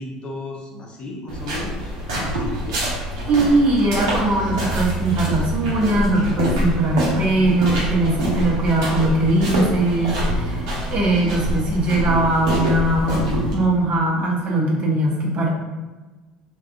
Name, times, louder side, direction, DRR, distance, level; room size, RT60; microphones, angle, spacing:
voice 1, 0.0-2.9, left 2 dB, 40° left, -1 dB, 0.7 m, -35 dB
sound 1, 1.3-13.5, equal, 75° right, 0.8 m, -25 dB
voice 2, 3.3-15.5, right 2 dB, 45° right, -2 dB, 0.8 m, -20 dB
3.5 x 2.2 x 2.3 m, 1.2 s
hypercardioid pair, 65°, 3 cm